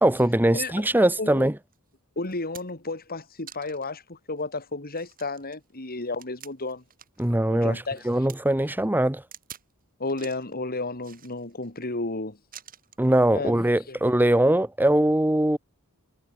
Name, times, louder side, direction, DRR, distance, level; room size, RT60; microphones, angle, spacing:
voice 1, 0.0-1.5 7.2-9.2 13.0-15.6, right 1 dB, 10° right, 1.1 m, -21 dB
voice 2, 0.5-1.4 2.2-6.8 7.5-8.1 10.0-12.4 13.3-14.0, left 3 dB, 45° left, 3.6 m, -33 dB
sound 1, 1.7-1.8 2.2-2.9 3.5-3.9 4.4-4.5 4.9-7.3 7.6-8.4 9.3-9.7 10.1-10.5 11.0-11.7 12.5-13.1 14.1-14.3, right 9 dB, 40° right, 4.6 m, -47 dB
head